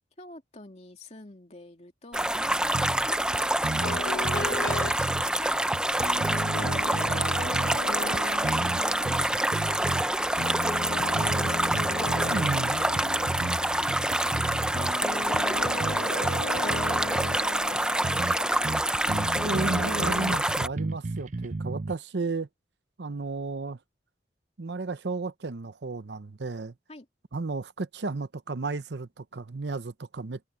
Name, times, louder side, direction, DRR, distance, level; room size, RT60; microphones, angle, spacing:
voice 1, 0.2-3.3 3.8-4.0 4.3-8.3 8.8-12.4 12.9-19.0 26.9-27.1, left 2 dB, 40° left, 2.9 m, -49 dB
Running Water, 2.1-20.7, right 1 dB, 5° right, 0.6 m, -27 dB
sound 1, 2.7-3.1 3.3-3.4 3.6-5.3 5.7-7.8 8.1-10.1 10.4-10.6 11.0-12.6 13.0-13.6 13.9-14.9 15.3-17.4 17.7-17.8 18.0-18.4 18.6-21.9, right 3 dB, 45° right, 0.6 m, -34 dB
sound 2, 3.8-5.0 6.0-20.4, left 2 dB, 60° left, 1.2 m, -37 dB
voice 2, 12.3-12.9 19.4-22.5 23.0-23.8 24.6-26.7 27.3-30.5, right 3 dB, 75° right, 0.8 m, -33 dB
open air
head